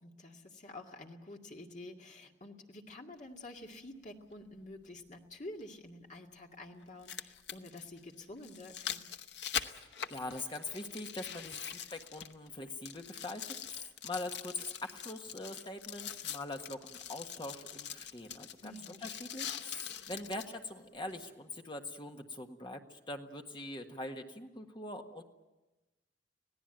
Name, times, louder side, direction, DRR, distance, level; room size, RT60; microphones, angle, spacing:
voice 1, 0.0-9.1 18.6-19.0, left 1 dB, 45° left, 2 dB, 2.2 m, -49 dB
sound 1, 3.6-3.7 5.6-5.7 6.8-12.5 12.8-20.5 21.1-21.2, left 8 dB, 80° left, 1.0 m, -43 dB
voice 2, 10.1-13.4 13.7-18.7 19.0-25.2, left 2 dB, 25° left, 4 dB, 1.6 m, -43 dB
26.0 x 17.5 x 9.1 m, 1.1 s
head